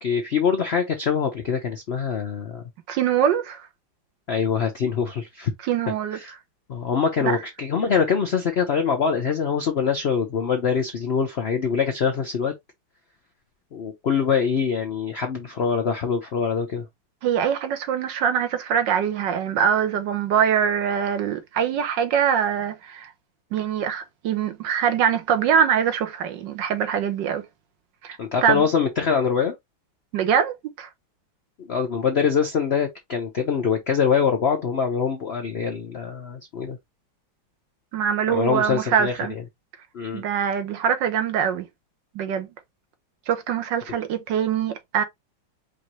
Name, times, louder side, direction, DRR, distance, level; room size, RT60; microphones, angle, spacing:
voice 1, 0.0-2.6 4.3-5.5 6.1-6.3 6.7-12.5 13.7-16.9 28.2-29.5 31.6-36.8 38.3-39.4 39.9-40.2, left 6 dB, 65° left, 0.6 m, -24 dB
voice 2, 2.9-3.6 5.7-6.2 7.2-7.3 17.2-23.1 23.5-27.4 28.0-28.6 30.1-30.9 37.9-39.3 40.1-41.7 42.1-42.5 43.3-45.0, right 8 dB, 70° right, 1.4 m, -23 dB
5.2 x 2.6 x 3.0 m
omnidirectional pair, 2.1 m